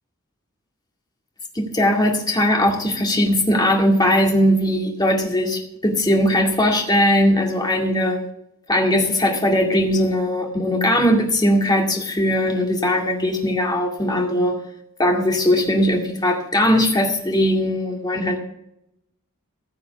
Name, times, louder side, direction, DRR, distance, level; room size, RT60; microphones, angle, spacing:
voice 1, 1.6-8.2 8.7-14.6 15.0-18.4, left 1 dB, 20° left, 1 dB, 2.1 m, -19 dB
15.0 x 6.0 x 6.8 m, 0.77 s
head